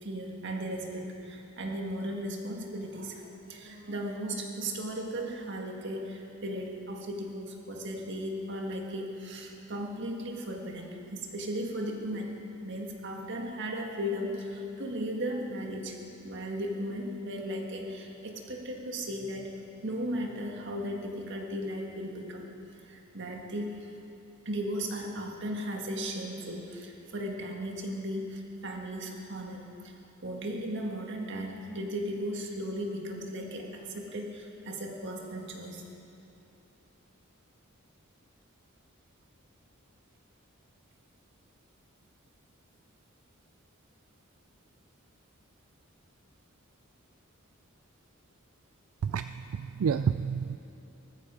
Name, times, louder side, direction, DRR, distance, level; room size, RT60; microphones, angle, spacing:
voice 1, 0.0-12.3 12.6-16.0 16.2-19.5 19.8-22.4 22.8-23.8 24.5-29.9 30.2-35.8, equal, 55° right, 1 dB, 1.8 m, -36 dB
voice 2, 49.0-50.6, right 6 dB, 80° right, 11 dB, 0.4 m, -29 dB
19.5 x 14.5 x 4.9 m, 2.8 s
head